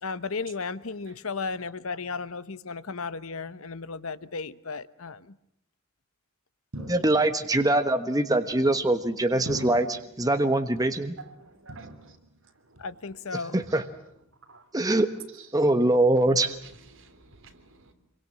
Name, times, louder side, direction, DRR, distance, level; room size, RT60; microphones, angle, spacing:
voice 1, 0.0-5.2 12.8-13.6, left 4 dB, 70° left, 1.0 m, -34 dB
sound 1, 6.7-7.6 8.4-8.9 9.5-10.3 10.8-11.4 11.7-12.5 12.8-13.2 13.6-14.2, equal, 80° right, 7.7 m, -42 dB
voice 2, 6.9-11.2 13.5-13.8 14.7-15.1 15.5-16.5, right 2 dB, 15° right, 1.2 m, -23 dB
voice 3, 11.2-11.9 14.5-14.6 16.9-17.9, right 4 dB, 65° right, 3.5 m, -49 dB
26.5 x 24.0 x 7.4 m
head